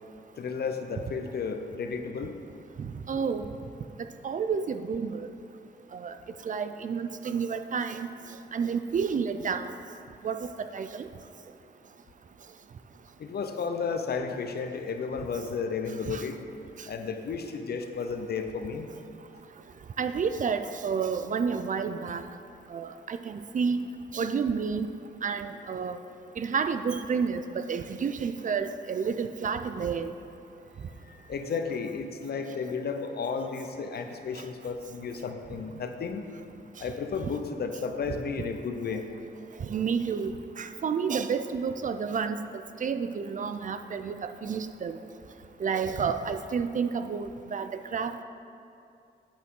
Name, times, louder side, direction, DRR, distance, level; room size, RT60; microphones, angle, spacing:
voice 1, 0.4-2.3 13.2-16.4 16.9-18.9 31.1-36.2 36.8-39.1, left 5 dB, 60° left, 6 dB, 0.7 m, -33 dB
voice 2, 2.8-3.4 4.2-5.3 5.9-6.2 6.5-8.1 8.5-9.7 10.2-11.1 16.1-16.2 20.0-22.2 22.7-23.9 24.1-24.9 25.2-26.0 26.4-30.1 38.9-39.0 39.7-42.4 42.8-45.0 45.6-48.2, right 6 dB, 45° right, 9 dB, 0.4 m, -30 dB
8.6 x 8.4 x 3.8 m, 2.5 s
cardioid pair, 90°, 19 cm